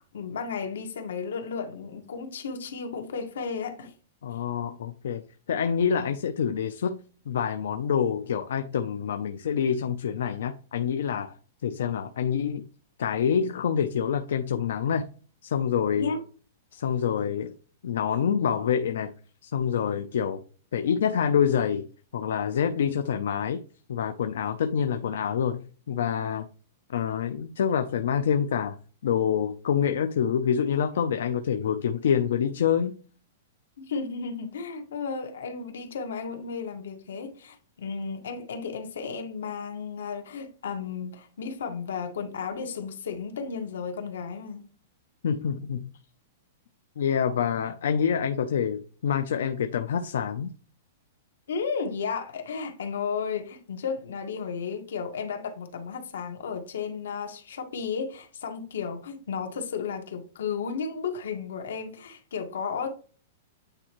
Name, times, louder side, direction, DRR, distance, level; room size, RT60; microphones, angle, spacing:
voice 1, 0.1-3.9 15.9-16.2 33.8-44.6 51.5-63.0, left 5 dB, 90° left, 1.7 m, -33 dB
voice 2, 4.2-5.2 5.5-7.0 7.3-11.4 11.6-12.6 13.0-15.1 15.4-16.1 16.7-17.5 17.8-19.1 19.4-20.4 20.7-21.9 22.1-23.6 23.9-26.5 26.9-28.8 29.0-33.0 45.2-45.9 47.0-50.5, left 7 dB, 75° left, 0.5 m, -26 dB
8.9 x 4.3 x 3.0 m
supercardioid pair, 170°, 0 cm